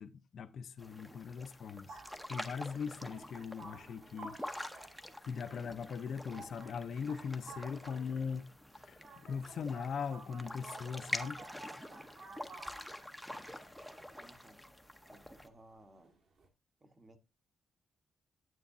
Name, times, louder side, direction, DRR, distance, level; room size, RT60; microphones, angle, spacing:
voice 1, 0.0-2.0 2.3-4.4 4.6-8.5 8.8-11.4, left 6 dB, 50° left, 0.6 m, -40 dB
sound 1, 0.8-15.5, left 1 dB, ahead, 0.7 m, -47 dB
sound 2, 1.6-16.5, right 3 dB, 50° right, 1.8 m, -54 dB
voice 2, 14.1-14.7 15.1-16.1 16.8-17.2, right 2 dB, 20° right, 1.0 m, -60 dB
9.4 x 9.4 x 2.6 m
wide cardioid pair, 175°, 0 cm